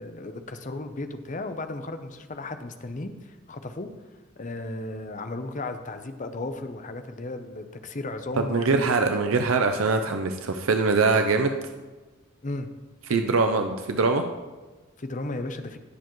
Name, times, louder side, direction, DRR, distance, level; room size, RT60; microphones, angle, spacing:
voice 1, 0.0-3.9 4.4-8.8 12.4-12.7 13.1-13.2 15.0-15.8, left 2 dB, 35° left, 8 dB, 0.7 m, -35 dB
voice 2, 8.4-11.5 13.1-14.2, right 4 dB, 75° right, 6 dB, 0.6 m, -23 dB
18.0 x 7.0 x 3.1 m, 1.2 s
head